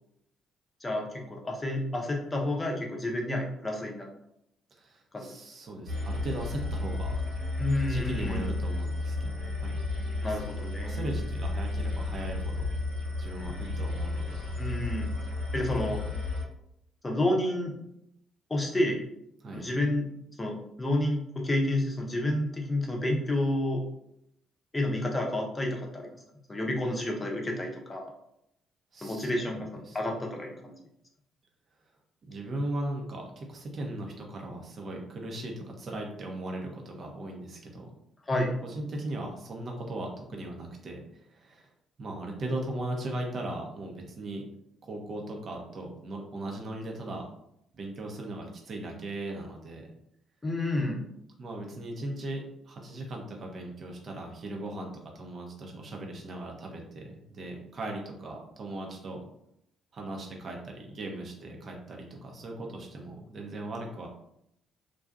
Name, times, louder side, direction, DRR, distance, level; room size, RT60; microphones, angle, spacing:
voice 1, 0.8-4.1 5.1-5.3 7.6-8.5 10.2-11.0 14.6-15.1 15.5-16.0 17.0-17.7 18.5-19.0 19.5-20.1 20.4-23.8 24.7-26.1 26.5-28.1 29.0-30.7 38.3-38.6 50.4-51.0, left 1 dB, 20° left, 0 dB, 0.7 m, -30 dB
voice 2, 4.8-7.2 7.9-9.8 10.2-10.4 10.8-12.5 13.2-14.4 19.4-19.7 28.9-30.0 32.3-37.9 38.6-41.7 42.0-44.4 44.8-47.3 47.7-49.9 51.4-59.2 59.9-64.1, right 1 dB, 45° right, 0 dB, 0.6 m, -38 dB
sound 1, 5.9-16.4, left 2 dB, 90° right, 1.2 m, -32 dB
2.6 x 2.3 x 2.4 m, 0.77 s
figure-of-eight pair, 45°, 0 cm